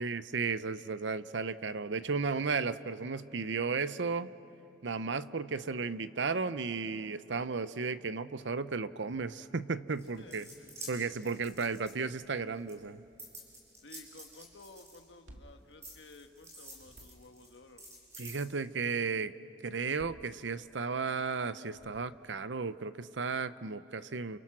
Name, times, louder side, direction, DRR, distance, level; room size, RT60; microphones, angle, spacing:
voice 1, 0.0-4.3 4.8-10.5 10.9-13.0 18.2-19.3 19.6-24.4, right 4 dB, 70° right, 13 dB, 0.7 m, -34 dB
sound 1, 9.9-12.3 12.7-15.4 15.8-18.5, right 1 dB, 15° right, 6.4 m, -49 dB
voice 2, 10.2-10.9 11.2-11.4 13.8-17.9, left 2 dB, 65° left, 6 dB, 1.6 m, -54 dB
sound 2, 15.0-16.4 16.7-17.5 19.7-20.9 21.6-22.5, equal, 85° right, 2.2 m, -57 dB
29.5 x 29.0 x 6.1 m, 2.8 s
head